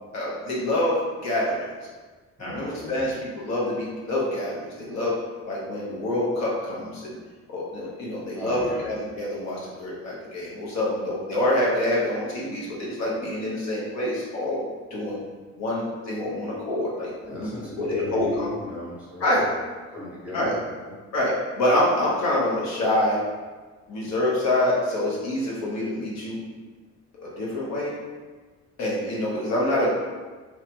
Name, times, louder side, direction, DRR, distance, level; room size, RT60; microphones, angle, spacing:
voice 1, 0.1-1.7 2.4-5.2 5.5-7.1 7.5-14.6 14.9-15.2 15.6-17.1 17.4-17.5 17.8-18.5 19.2-19.4 20.3-20.6 21.1-23.2 23.9-26.4 27.1-27.9 28.8-29.9, left 1 dB, 65° left, -5 dB, 0.9 m, -26 dB
voice 2, 2.4-3.0 8.3-8.8 17.2-19.6 19.9-21.0, left 2 dB, 5° right, -8 dB, 0.9 m, -37 dB
3.1 x 2.1 x 2.8 m, 1.4 s
cardioid pair, 135°, 29 cm